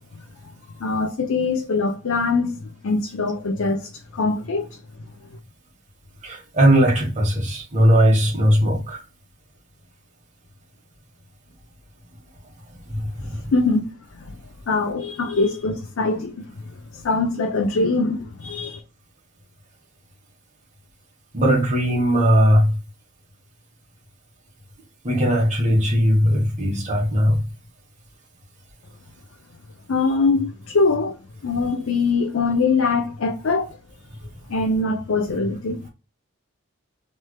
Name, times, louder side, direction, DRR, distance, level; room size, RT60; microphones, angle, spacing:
voice 1, 0.8-4.8 13.5-13.9 14.1-14.4 14.7-16.4 16.9-18.8 29.9-31.1 31.4-33.8 34.5-35.8, left 3 dB, 80° left, 0.5 m, -22 dB
voice 2, 6.2-9.0 12.9-13.4 21.3-22.8 25.0-27.4, equal, 35° right, 1.2 m, -18 dB
3.2 x 3.2 x 2.2 m
head